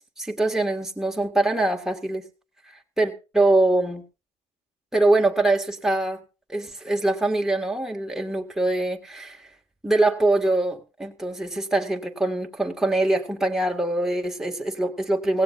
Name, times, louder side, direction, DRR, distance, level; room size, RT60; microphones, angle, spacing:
voice 1, 0.0-2.2 3.0-4.0 4.9-6.2 6.5-9.5 9.8-15.4, right 2 dB, 5° right, 1 dB, 1.8 m, -23 dB
17.5 x 16.5 x 2.5 m, 0.31 s
cardioid pair, 110°, 17 cm